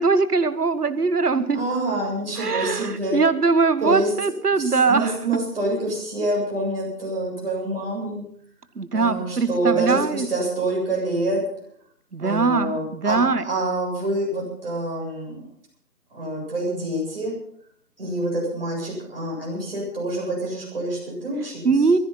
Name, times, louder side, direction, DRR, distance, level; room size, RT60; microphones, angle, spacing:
voice 1, 0.0-1.6 2.4-5.1 8.7-10.3 12.1-13.4 21.6-22.0, right 4 dB, 70° right, 14 dB, 1.4 m, -21 dB
voice 2, 1.5-3.2 3.8-4.1 4.6-8.3 8.9-11.4 12.2-15.5 16.1-17.3 18.0-21.7, right 1 dB, 35° right, -3 dB, 7.6 m, -26 dB
16.0 x 15.0 x 5.6 m, 0.63 s
figure-of-eight pair, 170°, 47 cm